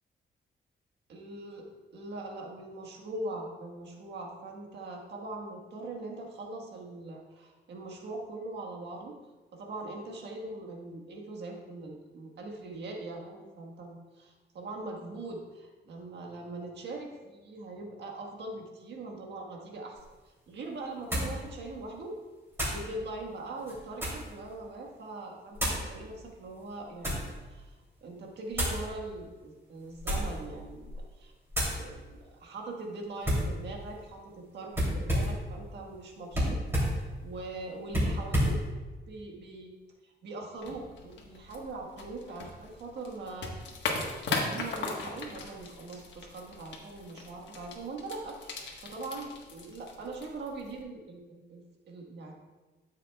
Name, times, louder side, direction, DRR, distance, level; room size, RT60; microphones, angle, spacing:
voice 1, 1.1-1.6 1.9-9.2 9.5-20.0 20.3-22.1 22.6-27.2 27.5-27.7 28.0-31.3 31.6-36.6 36.9-37.0 37.2-38.6 39.1-39.7 40.0-52.3, right 2 dB, 70° right, 1 dB, 1.5 m, -41 dB
sound 1, 20.0-20.1 21.1-21.4 22.5-22.9 23.6-24.3 25.5-25.9 26.6-27.3 28.5-28.8 29.9-30.4 30.8-31.1 31.5-31.8 33.2-33.5 34.7-35.4 36.3-37.0 37.9-38.6, equal, 15° right, 2.8 m, -30 dB
sound 2, 40.6-50.8, left 3 dB, 80° left, 1.3 m, -39 dB
12.5 x 7.5 x 2.3 m, 1.3 s
wide cardioid pair, 180°, 18 cm